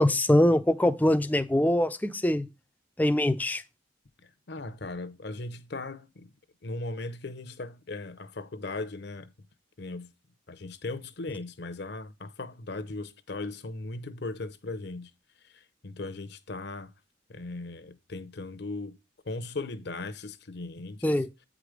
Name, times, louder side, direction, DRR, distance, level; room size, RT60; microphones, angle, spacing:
voice 1, 0.0-2.5 3.0-3.6 21.0-21.3, left 1 dB, 10° left, 0.4 m, -23 dB
voice 2, 4.5-6.3 6.6-9.3 9.8-10.1 10.5-15.1 15.5-16.9 17.3-19.0 19.3-21.1, left 2 dB, 55° left, 0.7 m, -38 dB
8.7 x 4.9 x 5.0 m
head